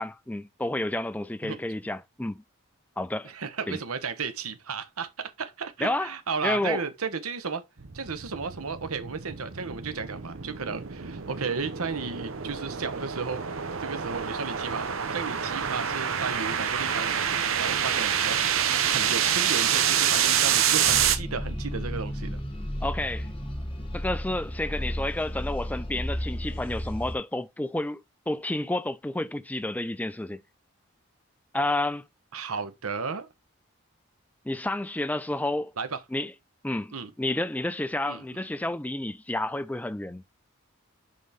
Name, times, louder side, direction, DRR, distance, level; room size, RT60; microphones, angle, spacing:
voice 1, 0.0-2.4 3.0-3.3 3.7-3.8 5.8-6.1 6.4-6.8 22.8-23.3 23.9-28.0 28.3-30.4 31.5-32.0 34.5-35.7 36.1-36.3 36.6-40.2, left 1 dB, 5° left, 0.4 m, -30 dB
voice 2, 3.2-7.6 7.9-13.4 13.8-17.1 17.6-18.4 18.9-22.4 32.3-33.3 35.8-36.0 36.9-37.1 38.1-38.2, right 5 dB, 85° right, 1.1 m, -34 dB
sound 1, 7.8-21.2, right 8 dB, 70° right, 0.9 m, -27 dB
sound 2, 20.8-27.2, equal, 25° left, 1.4 m, -33 dB
6.6 x 5.2 x 3.6 m
head